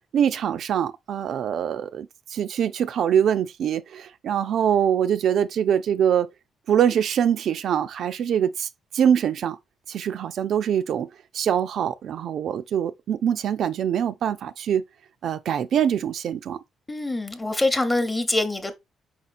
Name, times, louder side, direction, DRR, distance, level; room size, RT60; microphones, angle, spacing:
voice 1, 0.1-6.3 6.7-9.6 9.9-11.1 11.3-14.8 15.2-16.6, right 9 dB, 65° right, 0.3 m, -24 dB
voice 2, 16.9-18.7, left 2 dB, 15° left, 0.8 m, -24 dB
4.3 x 4.3 x 2.4 m
cardioid pair, 90°, 0 cm